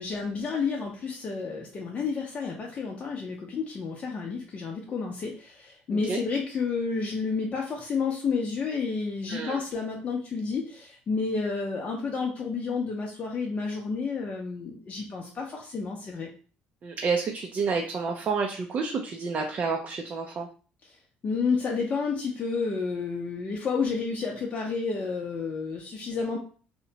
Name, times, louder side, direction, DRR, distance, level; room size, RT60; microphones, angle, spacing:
voice 1, 0.0-16.3 21.2-26.4, left 4 dB, 40° left, -1 dB, 0.6 m, -30 dB
voice 2, 5.9-6.2 9.3-9.6 16.8-20.5, right 5 dB, 45° right, 2 dB, 0.4 m, -29 dB
2.7 x 2.2 x 2.7 m, 0.39 s
cardioid pair, 90°, 4 cm